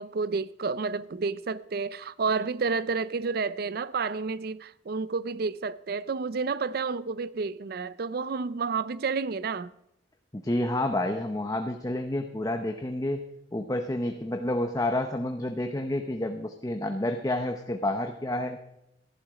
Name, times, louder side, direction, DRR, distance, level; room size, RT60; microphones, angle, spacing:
voice 1, 0.0-9.7, right 4 dB, 55° right, 0.5 m, -30 dB
voice 2, 10.3-13.2 13.5-18.6, left 1 dB, 20° left, 0.7 m, -29 dB
14.5 x 11.5 x 5.0 m
head